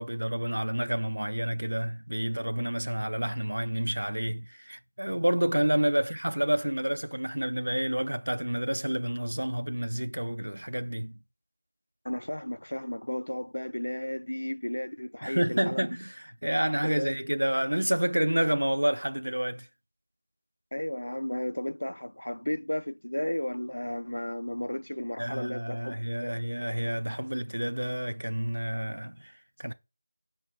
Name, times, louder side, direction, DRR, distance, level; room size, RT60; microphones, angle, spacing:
voice 1, 0.0-11.2 15.2-19.7 25.2-29.7, right 1 dB, 85° right, 0.4 m, -29 dB
voice 2, 12.0-15.9 17.0-17.2 20.7-26.3, left 1 dB, 85° left, 0.3 m, -34 dB
4.7 x 4.0 x 2.2 m
figure-of-eight pair, 170°, 0 cm